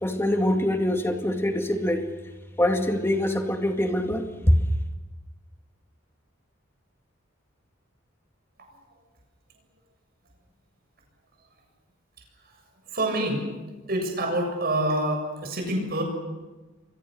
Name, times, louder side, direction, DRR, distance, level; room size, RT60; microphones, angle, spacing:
voice 1, 0.0-2.1 2.6-4.6, left 1 dB, 10° left, 2.2 m, -24 dB
voice 2, 12.8-13.5 13.8-16.0, right 1 dB, 50° right, 7.4 m, -27 dB
29.0 x 24.0 x 6.6 m
head